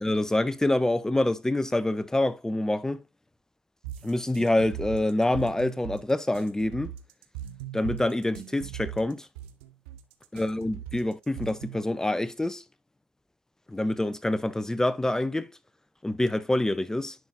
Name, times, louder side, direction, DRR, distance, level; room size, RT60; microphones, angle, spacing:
voice 1, 0.0-3.0 4.0-6.9 7.7-9.3 10.3-12.6 13.7-15.5 16.0-17.2, left 1 dB, 10° left, 0.6 m, -26 dB
sound 1, 3.8-11.9, right 11 dB, 75° right, 1.0 m, -40 dB
10.5 x 5.6 x 2.5 m
hypercardioid pair, 70°, 7 cm